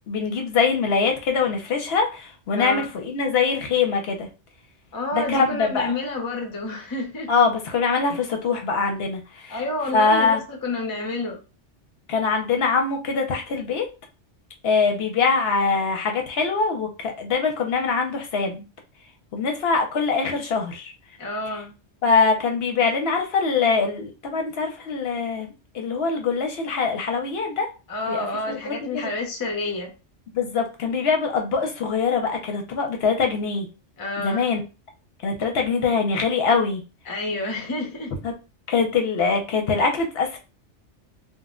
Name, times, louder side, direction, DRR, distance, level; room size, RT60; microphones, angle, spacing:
voice 1, 0.1-4.3 5.1-5.9 7.3-9.6 9.9-10.4 12.1-13.9 14.6-18.6 19.3-20.9 22.0-25.5 25.7-27.7 28.1-29.1 30.3-33.7 34.2-34.6 35.2-36.8 38.2-38.3 38.7-40.4, left 4 dB, 65° left, 3 dB, 0.8 m, -23 dB
voice 2, 2.5-2.9 4.9-7.3 9.5-11.4 21.2-21.7 27.9-29.9 34.0-34.5 37.1-38.2, left 2 dB, 25° left, 2 dB, 0.4 m, -29 dB
2.2 x 2.1 x 3.6 m, 0.30 s
omnidirectional pair, 1.2 m